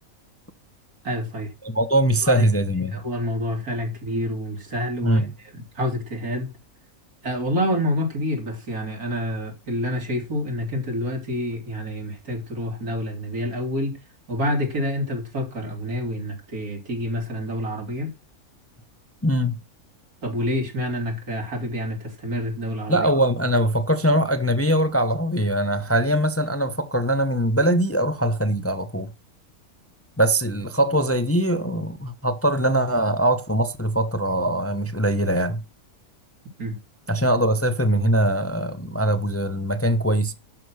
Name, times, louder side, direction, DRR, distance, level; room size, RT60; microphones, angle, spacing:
voice 1, 1.0-1.5 2.2-2.4 2.9-6.5 7.2-14.0 14.3-18.1 20.2-23.1 36.6-36.8, equal, 85° right, 3.7 m, -28 dB
voice 2, 1.6-3.0 5.0-5.3 19.2-19.6 22.9-29.1 30.2-35.6 37.1-40.3, right 1 dB, 10° left, 0.8 m, -22 dB
12.0 x 6.1 x 6.4 m
omnidirectional pair, 1.5 m